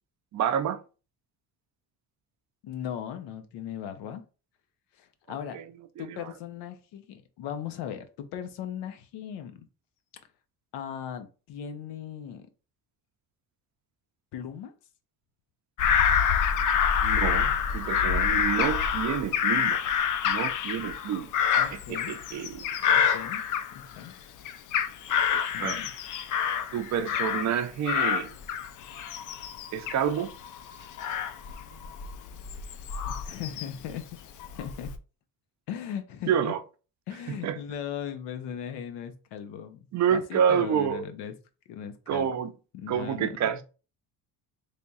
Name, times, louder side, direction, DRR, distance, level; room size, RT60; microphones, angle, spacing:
voice 1, 0.3-0.8 5.5-5.6 6.0-6.3 17.0-19.8 20.2-21.3 21.7-22.6 25.1-25.8 26.7-28.3 29.7-30.3 36.3-36.6 37.3-37.6 39.9-41.1 42.1-42.5 42.9-43.6, right 8 dB, 45° right, 0.5 m, -28 dB
voice 2, 2.6-4.2 5.0-5.6 6.0-9.7 10.7-12.5 14.3-14.7 21.6-22.1 22.8-23.4 23.7-24.1 25.5-25.9 33.1-34.1 34.5-34.9 35.7-36.5 37.1-39.8 40.1-41.3 41.7-42.5 42.7-43.6, left 9 dB, 90° left, 0.7 m, -38 dB
Bird vocalization bird call bird song / Crow, 15.8-24.1 24.5-27.6 27.9-33.9 34.4-35.0, left 8 dB, 50° left, 0.4 m, -27 dB
3.3 x 2.3 x 4.0 m
cardioid pair, 130°, 40 cm